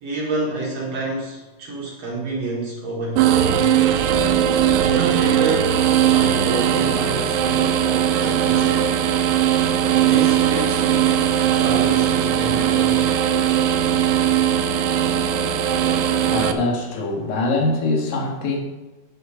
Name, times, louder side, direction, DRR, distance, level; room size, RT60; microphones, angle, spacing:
voice 1, 0.0-3.8 4.9-5.8 6.1-8.9 10.0-13.1, right 3 dB, 55° right, -3 dB, 2.6 m, -28 dB
sound 1, 3.2-16.5, right 9 dB, 90° right, 2.4 m, -19 dB
voice 2, 15.9-18.6, left 2 dB, 90° left, 2 dB, 3.4 m, -24 dB
9.5 x 7.7 x 6.2 m, 1.2 s
omnidirectional pair, 3.9 m